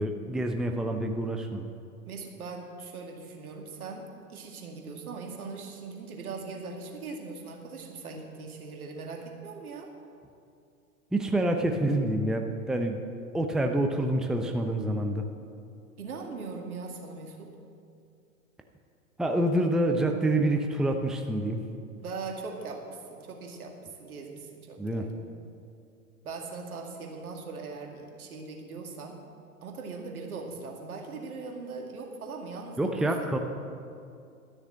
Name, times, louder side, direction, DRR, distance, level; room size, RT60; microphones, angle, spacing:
voice 1, 0.0-1.7 11.1-13.0 13.3-15.3 19.2-21.6 24.8-25.1 32.8-33.4, right 1 dB, ahead, 4 dB, 0.7 m, -27 dB
voice 2, 2.1-9.9 16.0-17.5 22.0-25.1 26.2-29.2 29.6-33.3, right 4 dB, 80° right, 2 dB, 2.2 m, -40 dB
13.0 x 6.8 x 8.6 m, 2.5 s
hypercardioid pair, 100°, 43 cm